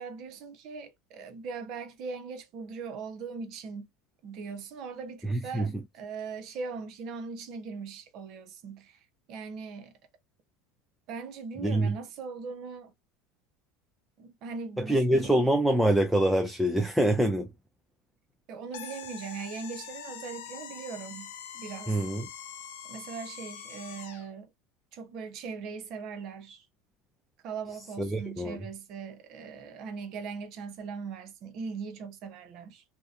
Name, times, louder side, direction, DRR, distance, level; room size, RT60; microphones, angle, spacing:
voice 1, 0.0-3.9 4.2-5.7 5.9-9.0 9.3-9.9 11.1-12.9 14.2-15.3 18.5-22.0 22.8-24.5 24.9-26.6 27.4-32.8, right 5 dB, 55° right, 0.6 m, -40 dB
voice 2, 5.2-5.8 11.6-11.9 14.8-17.5 21.9-22.3 28.0-28.6, right 1 dB, 5° right, 0.4 m, -25 dB
sound 1, 18.7-24.3, left 8 dB, 85° left, 0.5 m, -44 dB
2.7 x 2.0 x 2.4 m
supercardioid pair, 120°, 0 cm